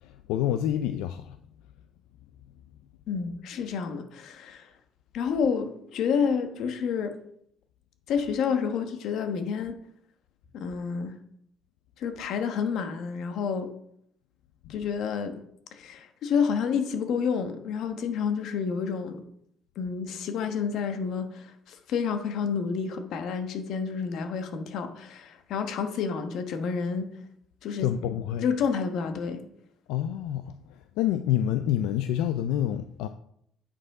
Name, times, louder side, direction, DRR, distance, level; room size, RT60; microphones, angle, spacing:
voice 1, 0.0-1.4 27.8-28.5 29.9-33.1, left 11 dB, 90° left, 0.4 m, -28 dB
voice 2, 3.1-4.7 5.1-7.2 8.1-9.7 10.5-11.1 12.0-13.7 14.7-15.4 15.7-19.2 19.8-27.1 27.6-27.9 28.4-29.4, left 6 dB, 65° left, 1.2 m, -29 dB
8.5 x 5.3 x 4.9 m
cardioid pair, 120°, 0 cm